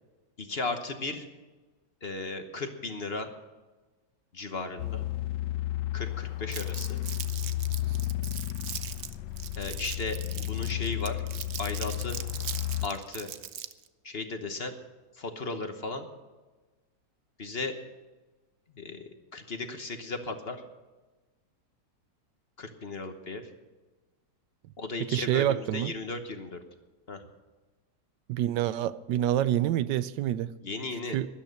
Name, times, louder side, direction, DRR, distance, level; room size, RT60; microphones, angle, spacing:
voice 1, 0.4-1.3 2.0-3.3 4.3-5.1 5.9-7.0 9.6-11.2 11.6-12.2 12.8-13.3 14.0-14.7 15.1-16.1 17.4-17.8 18.8-19.0 19.3-20.6 22.6-23.5 24.8-26.6 27.1-27.2 30.6-31.2, left 3 dB, 40° left, 7 dB, 1.2 m, -35 dB
sound 1, 4.8-12.9, left 15 dB, 90° left, 1.3 m, -33 dB
Crumpling crinkling, 6.5-13.9, right 9 dB, 60° right, 0.7 m, -40 dB
voice 2, 25.1-25.9 28.3-30.5 31.1-31.3, right 12 dB, 90° right, 16 dB, 1.3 m, -27 dB
13.0 x 11.5 x 6.5 m, 1.2 s
omnidirectional pair, 1.8 m